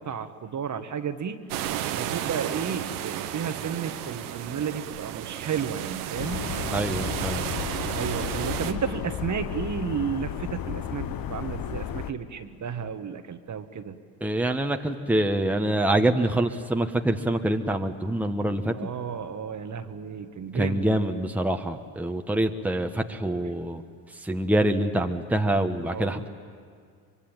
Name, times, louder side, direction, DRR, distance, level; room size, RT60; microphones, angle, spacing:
voice 1, 0.0-1.4 2.0-6.5 7.9-13.9 18.7-20.9 25.9-26.2, right 7 dB, 40° right, 8 dB, 1.5 m, -32 dB
sound 1, 1.5-8.7, right 11 dB, 85° right, 1.3 m, -33 dB
sound 2, 6.1-12.1, left 9 dB, 50° left, 1.1 m, -33 dB
voice 2, 6.7-7.5 14.2-18.7 20.5-23.8 24.2-26.3, right 1 dB, 5° right, 5 dB, 1.3 m, -25 dB
24.0 x 23.0 x 9.0 m, 2.1 s
hypercardioid pair, 70°, 45 cm